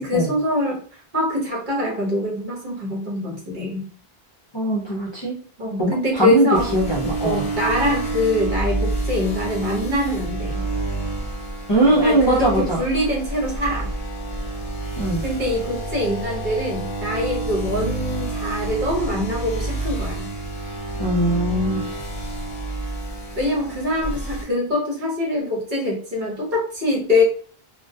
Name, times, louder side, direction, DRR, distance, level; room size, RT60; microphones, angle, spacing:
voice 1, 0.0-3.8 5.6-6.7 7.2-10.6 11.8-13.9 15.2-20.3 23.4-27.2, left 1 dB, 50° right, -3 dB, 1.0 m, -24 dB
voice 2, 4.5-5.4 5.8-7.4 11.7-12.8 15.0-15.2 21.0-21.9, right 1 dB, 35° left, -5 dB, 0.5 m, -20 dB
sound 1, 6.5-24.4, right 2 dB, 55° left, 0.8 m, -28 dB
2.2 x 2.1 x 2.6 m, 0.43 s
omnidirectional pair, 1.0 m